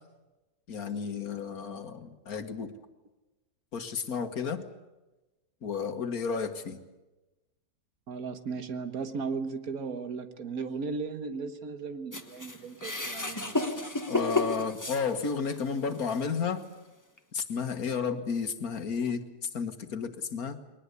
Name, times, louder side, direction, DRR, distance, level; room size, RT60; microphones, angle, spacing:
voice 1, 0.7-2.7 3.7-4.6 5.6-6.8 14.1-16.7 17.3-19.2 19.5-20.6, left 5 dB, 65° left, 8 dB, 1.9 m, -32 dB
voice 2, 8.1-13.7 19.1-19.2, right 4 dB, 65° right, 9 dB, 1.8 m, -36 dB
sound 1, 12.1-15.6 16.1-16.2 17.2-17.3, left 3 dB, 10° left, 1.3 m, -32 dB
21.5 x 19.5 x 8.2 m, 1.1 s
omnidirectional pair, 1.7 m